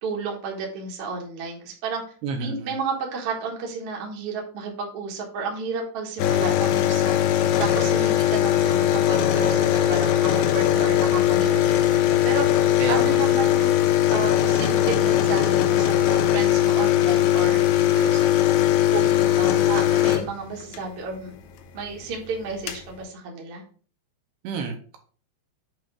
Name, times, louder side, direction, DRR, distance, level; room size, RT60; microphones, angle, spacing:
voice 1, 0.0-2.0 2.4-13.8 14.1-18.3 18.9-21.3 21.7-23.6, right 4 dB, 60° right, 0 dB, 1.5 m, -32 dB
voice 2, 2.2-2.7 12.8-13.2 24.4-25.0, right 5 dB, 80° right, 4 dB, 2.7 m, -30 dB
sound 1, 6.2-20.8 22.1-22.2 22.4-22.9, left 12 dB, 80° left, 2.1 m, -20 dB
7.7 x 3.1 x 5.0 m, 0.41 s
omnidirectional pair, 5.0 m